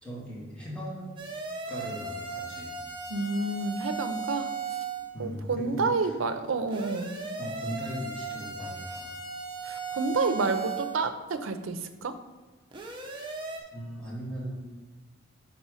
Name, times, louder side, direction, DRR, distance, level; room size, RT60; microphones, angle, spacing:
voice 1, 0.0-1.1 1.7-2.7 5.1-6.1 7.4-9.1 13.1-13.4 13.7-14.5, equal, 5° left, -6 dB, 1.6 m, -38 dB
Loud Emergency Alarm, 1.2-5.1 6.7-11.0 12.7-13.6, right 5 dB, 25° right, 0.7 m, -37 dB
voice 2, 3.1-4.5 5.2-7.2 9.6-12.2, right 3 dB, 85° right, 9 dB, 0.6 m, -29 dB
5.5 x 4.3 x 4.8 m, 1.2 s
head